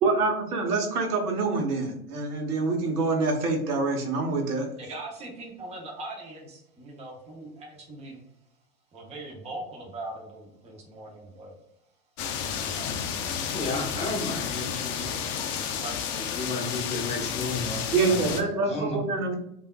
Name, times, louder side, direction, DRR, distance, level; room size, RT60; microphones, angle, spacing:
voice 1, 0.0-4.7 17.9-19.4, right 3 dB, 80° right, 3 dB, 0.8 m, -26 dB
voice 2, 4.8-8.2 8.9-11.6 12.5-13.0 15.5-16.0, right 2 dB, 15° right, 0 dB, 0.6 m, -41 dB
sound 1, 12.2-18.4, left 7 dB, 45° left, 0.5 m, -31 dB
voice 3, 13.5-15.2 16.3-19.0, left 2 dB, 15° left, -2 dB, 0.8 m, -33 dB
3.3 x 2.4 x 2.2 m, 0.77 s
hypercardioid pair, 95°, 45 cm